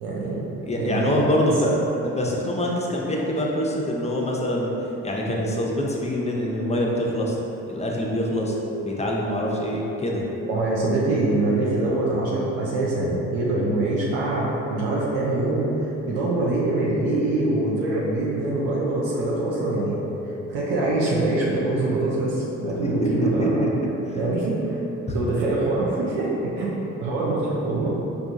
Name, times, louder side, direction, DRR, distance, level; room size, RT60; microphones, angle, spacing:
voice 1, 0.0-1.3 10.5-20.0 20.5-23.6 24.1-24.8 25.1-28.0, right 2 dB, 80° right, -5 dB, 0.6 m, -24 dB
voice 2, 0.6-4.7 5.0-7.4 7.7-8.5 8.8-10.2 22.8-22.9 23.4-23.7 24.1-24.2 25.1-25.2, equal, 20° left, -2 dB, 0.6 m, -25 dB
sound 1, 8.3-26.9, left 1 dB, 15° right, 1.1 m, -36 dB
4.5 x 2.3 x 2.6 m, 3.0 s
hypercardioid pair, 40°, 36 cm